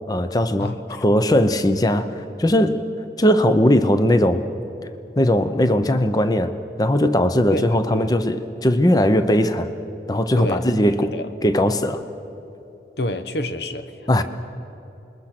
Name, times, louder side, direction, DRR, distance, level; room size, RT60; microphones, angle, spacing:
voice 1, 0.1-2.8 3.2-4.4 5.2-6.5 6.8-9.7 10.1-11.1 11.4-12.0 14.1-14.2, left 1 dB, 20° left, 0.8 m, -19 dB
voice 2, 0.6-1.2 7.5-8.1 10.4-10.7 11.0-11.3 13.0-14.2, left 1 dB, 70° left, 1.1 m, -28 dB
27.0 x 21.5 x 6.0 m
head